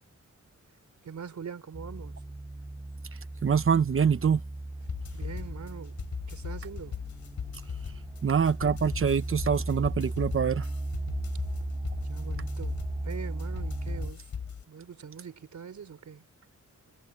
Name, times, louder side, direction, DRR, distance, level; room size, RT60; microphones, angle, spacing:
voice 1, 1.0-2.2 5.1-7.0 11.6-11.7 12.0-14.3 14.7-16.2, right 7 dB, 70° right, 3.8 m, -43 dB
sound 1, 1.7-14.1, right 2 dB, 15° right, 2.8 m, -36 dB
voice 2, 3.4-4.4 8.2-10.6, right 7 dB, 45° right, 1.0 m, -25 dB
sound 2, 4.8-14.6, left 7 dB, 75° left, 3.7 m, -39 dB
wide cardioid pair, 170°, 29 cm